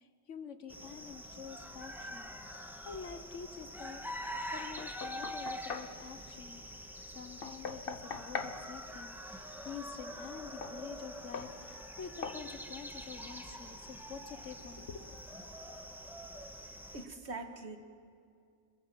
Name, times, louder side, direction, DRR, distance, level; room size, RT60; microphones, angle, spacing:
voice 1, 0.0-6.6 7.1-15.2, left 6 dB, 85° left, 10 dB, 1.6 m, -48 dB
sound 1, 0.7-17.0, equal, ahead, 1.6 m, -45 dB
Knock, 4.8-5.9 7.4-8.6 10.6-10.8 11.3-11.6 12.2-12.4, left 5 dB, 55° left, 1.1 m, -41 dB
voice 2, 16.9-17.8, right 3 dB, 70° right, 7 dB, 1.9 m, -42 dB
26.0 x 21.0 x 7.5 m, 2.4 s
omnidirectional pair, 1.2 m